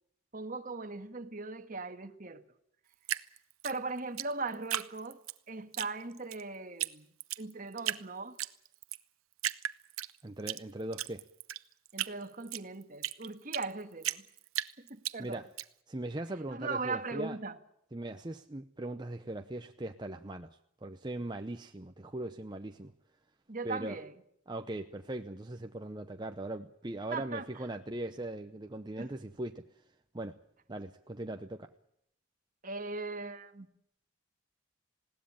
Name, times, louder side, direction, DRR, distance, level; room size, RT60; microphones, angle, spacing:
voice 1, 0.3-2.4 3.6-5.2 5.5-7.1 7.4-8.4 11.9-14.2 14.8-15.4 16.5-17.6 23.5-24.1 27.1-27.5 29.0-29.1 32.6-33.7, right 3 dB, 40° right, 1.6 m, -39 dB
Drip, 3.0-5.4 5.7-6.4 6.8-6.9 7.2-8.0 8.4-9.0 9.4-10.6 10.9-13.7 14.0-15.6, right 12 dB, 90° right, 0.9 m, -35 dB
voice 2, 10.2-11.2 15.2-15.5 15.9-17.4 17.9-20.5 20.8-22.9 23.6-24.0 24.5-29.6 30.1-30.4 30.7-31.7, right 1 dB, 20° right, 0.7 m, -39 dB
20.5 x 17.0 x 8.7 m
head